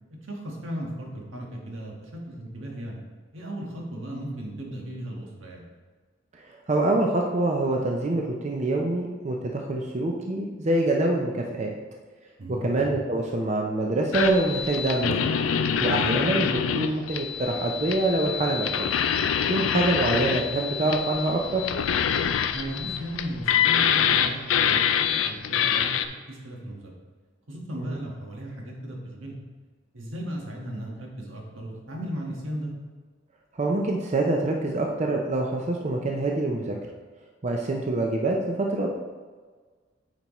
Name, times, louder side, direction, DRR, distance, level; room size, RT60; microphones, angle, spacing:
voice 1, 0.2-3.0 3.3-5.6 12.4-12.7 22.5-25.9 26.3-26.9 27.5-29.4 29.9-32.7, equal, 80° right, -1 dB, 1.4 m, -36 dB
voice 2, 6.7-11.7 12.5-15.4 15.8-18.9 19.5-21.6 27.8-28.0 33.5-36.7 37.4-38.9, right 2 dB, 35° right, 0 dB, 0.6 m, -25 dB
sound 1, 14.1-26.0, left 8 dB, 80° left, 0.4 m, -25 dB
9.1 x 4.5 x 3.0 m, 1.5 s
head